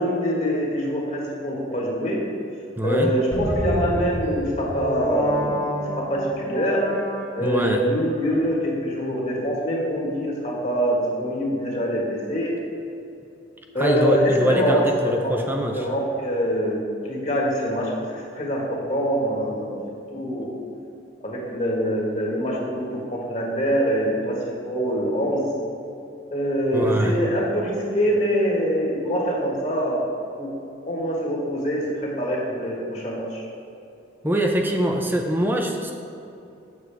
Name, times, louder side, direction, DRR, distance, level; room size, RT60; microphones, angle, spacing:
voice 1, 0.0-2.2 2.8-6.8 7.3-12.5 13.7-14.9 15.2-15.4 15.7-19.8 20.1-20.5 21.2-24.4 24.6-25.5 26.3-30.0 30.4-30.5 30.9-33.5, equal, 40° left, -3 dB, 1.5 m, -24 dB
voice 2, 2.8-3.1 7.4-7.9 13.8-15.9 26.7-27.2 34.2-35.9, equal, 10° right, 2 dB, 0.5 m, -23 dB
sound 1, 3.3-7.7, left 1 dB, 15° left, 0.8 m, -29 dB
7.8 x 7.3 x 3.4 m, 2.8 s
head